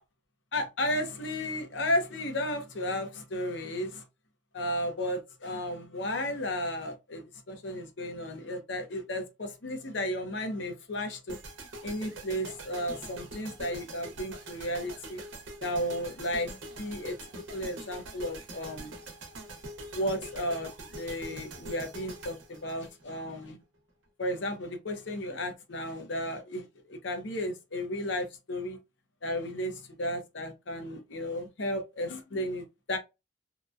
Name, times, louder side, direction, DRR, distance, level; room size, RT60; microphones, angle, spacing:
voice 1, 0.5-4.0 4.5-11.4 11.8-15.2 15.6-16.5 16.8-17.2 17.5-18.9 19.9-20.7 21.0-23.6 24.2-28.8 29.2-33.0, left 1 dB, 65° left, 0.8 m, -33 dB
sound 1, 11.3-23.5, right 1 dB, 80° right, 0.9 m, -44 dB
2.9 x 2.2 x 2.5 m
head